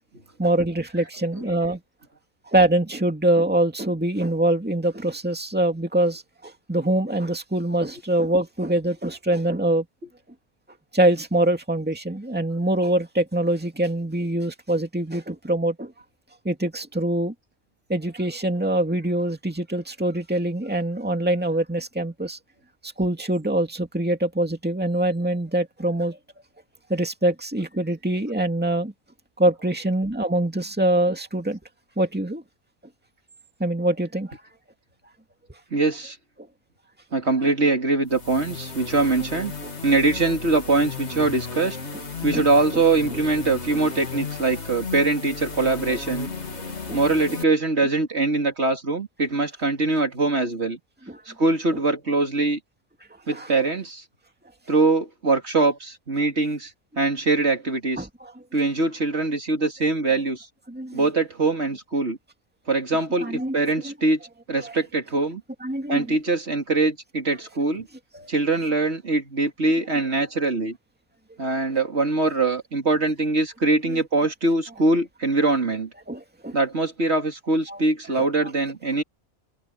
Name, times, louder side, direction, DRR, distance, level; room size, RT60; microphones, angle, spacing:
voice 1, 0.4-1.8 2.5-9.8 10.9-15.9 16.4-17.3 17.9-22.4 22.8-26.2 26.9-28.9 29.4-31.6 32.0-32.4 33.6-34.4 39.6-39.7 42.3-42.4 43.1-43.2 46.6-47.0 51.1-51.2 51.7-51.8 53.3-53.5 58.0-58.3 60.7-61.0 63.2-63.6 63.8-63.9 64.6-64.8 65.6-66.2 68.1-68.3 76.1-76.6 77.7-77.8, right 1 dB, 10° right, 2.2 m, -24 dB
voice 2, 35.7-36.2 37.1-39.5 39.8-41.8 42.2-46.3 46.9-50.8 51.3-52.6 53.3-54.0 54.7-56.7 57.0-58.1 58.5-60.5 60.9-62.2 62.7-64.2 64.5-65.4 65.9-67.9 68.3-70.8 71.4-75.9 76.5-79.0, right 3 dB, 70° right, 3.2 m, -23 dB
sound 1, 38.1-47.4, left 4 dB, 75° left, 2.7 m, -34 dB
open air
omnidirectional pair, 1.2 m